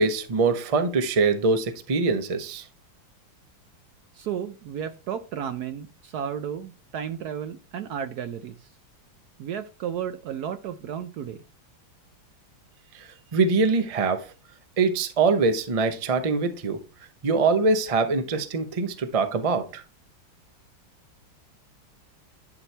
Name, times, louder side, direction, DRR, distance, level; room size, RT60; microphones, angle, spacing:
voice 1, 0.0-2.7 12.9-14.3 14.8-16.8 17.2-19.8, right 4 dB, 55° right, 0.3 m, -23 dB
voice 2, 4.1-8.7 9.4-11.4, right 8 dB, 75° right, 0.9 m, -33 dB
11.0 x 4.6 x 3.3 m
omnidirectional pair, 2.1 m